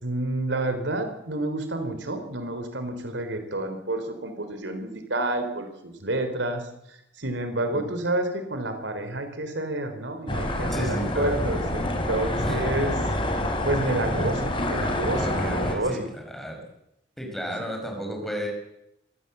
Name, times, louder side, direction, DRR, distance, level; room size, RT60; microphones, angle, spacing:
voice 1, 0.0-13.0 13.3-16.1, right 1 dB, 80° right, 8 dB, 3.6 m, -29 dB
sound 1, 10.3-15.7, left 1 dB, 30° left, 3.7 m, -27 dB
voice 2, 10.7-11.3 12.4-12.5 12.8-12.9 15.1-16.0 16.3-16.6 17.2-18.5, equal, ahead, 1 dB, 5.8 m, -32 dB
23.5 x 15.5 x 7.9 m, 0.83 s
head